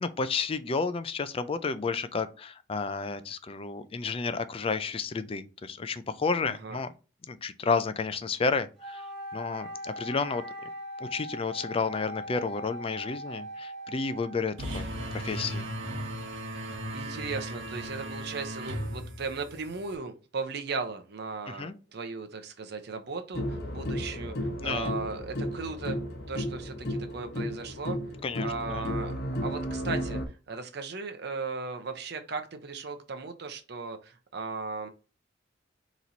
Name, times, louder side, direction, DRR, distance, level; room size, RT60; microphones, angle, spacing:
voice 1, 0.0-6.9 7.3-9.0 9.3-10.4 11.0-15.7 21.5-21.7 24.6-24.9 28.2-28.9, left 4 dB, 30° left, 0.4 m, -31 dB
voice 2, 6.4-6.8 16.9-26.0 26.3-28.0 28.4-29.1 29.4-30.2 30.5-34.9, right 4 dB, 60° right, 0.7 m, -37 dB
Wind instrument woodwind instrument, 8.8-14.7, equal, 5° left, 1.3 m, -40 dB
sound 1, 14.6-19.9, right 1 dB, 75° right, 1.0 m, -36 dB
sound 2, 23.3-30.3, equal, 55° left, 0.9 m, -33 dB
4.1 x 3.0 x 3.9 m
head